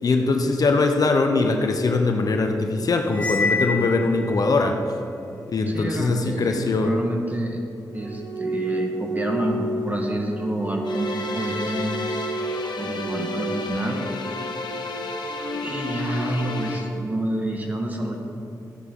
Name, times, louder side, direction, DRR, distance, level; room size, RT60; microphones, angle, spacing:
voice 1, 0.0-4.8 5.5-7.0, left 3 dB, 55° left, 4 dB, 0.9 m, -21 dB
Cymbal, 3.1-4.6, left 4 dB, 15° left, 1.0 m, -26 dB
voice 2, 5.7-7.6 7.9-12.0 12.8-14.0 15.5-18.2, right 1 dB, 25° right, 1 dB, 1.7 m, -28 dB
sound 1, 7.9-13.7, right 2 dB, 65° right, 3.1 m, -31 dB
sound 2, 10.9-16.8, left 3 dB, 80° left, 1.3 m, -31 dB
14.5 x 9.8 x 3.9 m, 2.6 s
wide cardioid pair, 95°, 7 cm